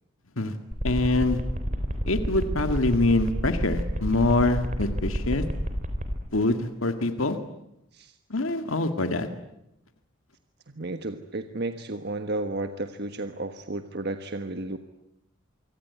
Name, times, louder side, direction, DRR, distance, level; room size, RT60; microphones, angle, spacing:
sound 1, 0.7-6.2, equal, 35° right, 4.0 m, -29 dB
voice 1, 0.8-1.4 2.1-5.4 6.3-7.4 8.3-9.3, left 2 dB, 80° left, 8 dB, 1.9 m, -24 dB
voice 2, 10.7-14.8, right 2 dB, 50° right, 8 dB, 1.4 m, -33 dB
25.5 x 25.0 x 9.5 m, 0.83 s
head